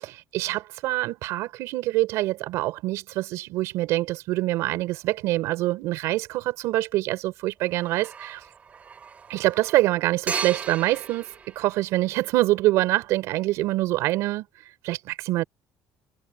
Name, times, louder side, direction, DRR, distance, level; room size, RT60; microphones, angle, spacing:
voice 1, 0.0-8.4 9.3-11.3 11.5-14.4 14.8-15.4, right 17 dB, 75° right, 4.5 m, -25 dB
sound 1, 4.9-5.1 7.6-12.4, right 6 dB, 30° right, 3.3 m, -37 dB
cardioid pair, 155°, 5 cm